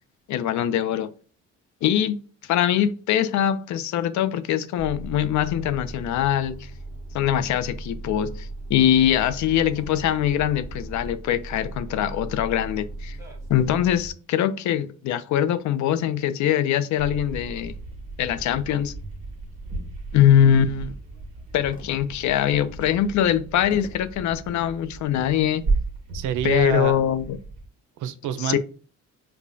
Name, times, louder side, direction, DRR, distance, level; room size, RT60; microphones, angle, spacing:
voice 1, 0.3-1.1 1.8-6.7 7.1-13.2 13.5-17.7 18.2-18.9 20.1-20.9 21.5-25.6 26.4-27.4 28.4-28.6, left 10 dB, 70° left, 0.5 m, -22 dB
sound 1, 4.8-14.1, right 2 dB, 10° right, 1.1 m, -37 dB
sound 2, 17.0-27.7, right 3 dB, 50° right, 1.5 m, -34 dB
sound 3, 21.7-22.3 22.9-23.0 23.7-24.2 25.0-25.4, equal, 30° left, 0.9 m, -43 dB
voice 2, 26.1-27.0 28.0-28.6, right 10 dB, 80° right, 0.5 m, -26 dB
4.9 x 2.2 x 2.6 m
cardioid pair, 90°, 30 cm